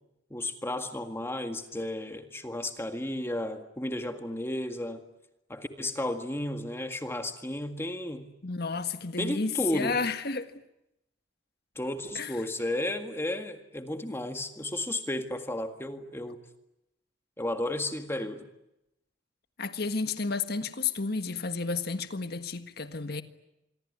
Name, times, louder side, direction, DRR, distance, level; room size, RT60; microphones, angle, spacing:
voice 1, 0.3-5.0 5.5-8.3 9.2-10.0 11.8-16.4 17.4-18.5, left 1 dB, 15° left, 1.8 m, -33 dB
voice 2, 8.4-10.5 12.1-12.3 19.6-23.2, left 4 dB, 55° left, 1.6 m, -31 dB
26.5 x 23.5 x 9.7 m
head